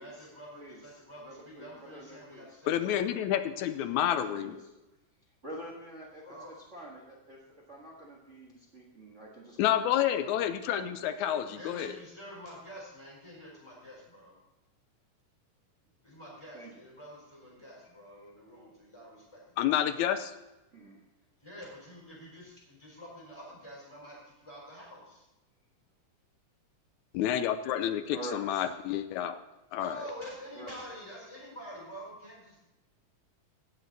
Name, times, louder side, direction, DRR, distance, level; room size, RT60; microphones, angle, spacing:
voice 1, 0.0-3.1 3.5-4.1 6.2-6.5 11.5-14.4 16.0-19.7 21.4-25.2 29.7-32.8, equal, 10° left, -4 dB, 4.4 m, -47 dB
voice 2, 0.5-2.6 3.9-4.7 5.4-7.4 7.7-11.7 16.5-16.8 18.1-18.3 20.7-21.0 28.1-28.7 30.5-30.8, right 1 dB, 35° right, -3 dB, 1.3 m, -47 dB
voice 3, 2.7-4.5 9.6-11.9 19.6-20.3 27.1-29.4 29.7-30.0, left 11 dB, 80° left, 10 dB, 1.9 m, -29 dB
17.0 x 6.7 x 4.1 m, 0.96 s
omnidirectional pair, 3.6 m